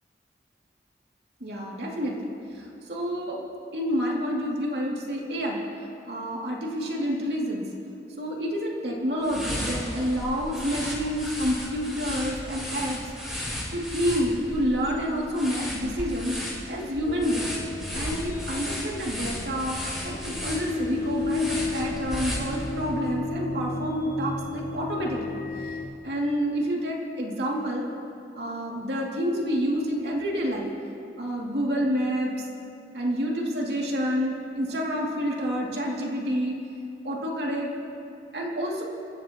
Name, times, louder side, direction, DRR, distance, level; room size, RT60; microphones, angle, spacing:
voice 1, 1.4-2.3 2.9-3.5 3.7-5.6 6.1-7.6 8.2-13.0 13.3-13.4 13.7-16.4 16.7-17.5 17.9-19.8 20.0-25.4 26.0-27.9 28.3-30.7 31.2-32.3 32.9-36.6 37.0-37.7 38.3-38.8, equal, 70° right, -2 dB, 2.6 m, -28 dB
sound 1, 9.2-22.9, left 1 dB, 5° right, 3.9 m, -35 dB
sound 2, 17.1-25.8, left 3 dB, 25° left, 2.3 m, -33 dB
29.5 x 15.0 x 3.0 m, 2.6 s
head